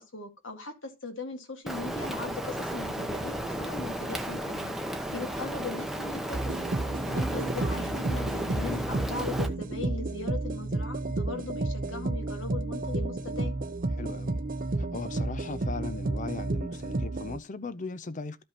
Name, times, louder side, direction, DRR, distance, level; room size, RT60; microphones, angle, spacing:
voice 1, 0.0-4.7 5.1-6.6 7.1-13.5, left 3 dB, 75° left, 2.0 m, -39 dB
Rain, 1.7-9.5, equal, ahead, 0.9 m, -34 dB
sound 1, 6.3-17.4, right 2 dB, 45° right, 0.7 m, -31 dB
voice 2, 14.0-14.4 14.9-18.4, left 3 dB, 40° left, 0.6 m, -37 dB
13.5 x 5.2 x 2.9 m
head